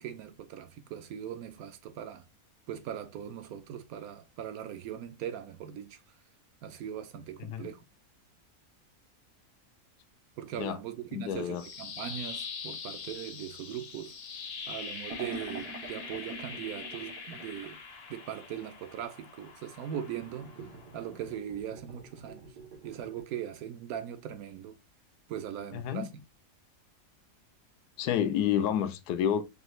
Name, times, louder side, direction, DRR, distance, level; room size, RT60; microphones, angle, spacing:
voice 1, 0.0-2.2 2.7-6.0 6.6-7.8 10.4-14.1 14.7-17.8 18.1-20.5 20.9-22.5 22.8-24.8 25.3-26.2, right 10 dB, 70° right, 1.0 m, -40 dB
voice 2, 11.1-11.6 25.7-26.1 28.0-29.4, left 9 dB, 85° left, 1.1 m, -29 dB
sound 1, 11.3-21.4, left 5 dB, 50° left, 0.8 m, -43 dB
sound 2, 15.1-17.8 20.1-23.2, right 3 dB, 90° right, 1.6 m, -46 dB
5.0 x 2.3 x 3.1 m
omnidirectional pair, 1.6 m